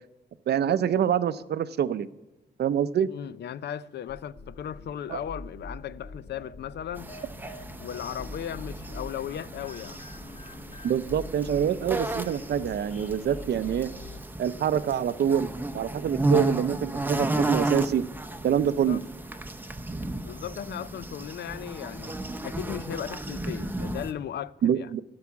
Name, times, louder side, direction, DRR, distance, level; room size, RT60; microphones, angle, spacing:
voice 1, 0.5-2.1 2.6-3.1 5.1-5.2 10.8-13.9 14.4-18.0 18.4-19.0 24.6-25.0, right 9 dB, 65° right, 0.5 m, -26 dB
voice 2, 3.0-7.1 7.8-10.0 18.8-19.0 20.2-22.2 22.4-24.9, left 10 dB, 70° left, 0.4 m, -36 dB
sound 1, 4.1-14.2, left 1 dB, 45° left, 1.1 m, -44 dB
sound 2, 7.0-24.1, right 2 dB, 10° right, 0.6 m, -33 dB
13.0 x 4.8 x 8.4 m
wide cardioid pair, 130°, 18 cm